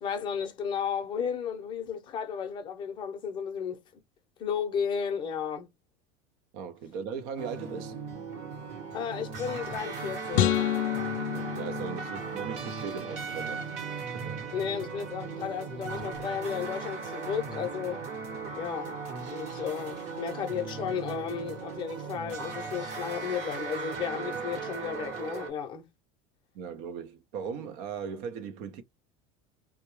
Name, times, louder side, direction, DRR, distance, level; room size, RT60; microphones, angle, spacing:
voice 1, 0.0-3.8 4.4-5.7 8.9-10.6 14.5-18.1 18.6-19.0 19.3-25.9, left 7 dB, 30° left, 0.6 m, -33 dB
voice 2, 6.5-7.9 11.2-13.6 14.1-14.4 26.5-28.8, right 6 dB, 60° right, 0.6 m, -38 dB
sound 1, 7.4-25.5, right 5 dB, 45° right, 1.1 m, -37 dB
sound 2, 10.3-12.7, left 12 dB, 70° left, 0.4 m, -29 dB
2.2 x 2.1 x 3.0 m
supercardioid pair, 155°, 17 cm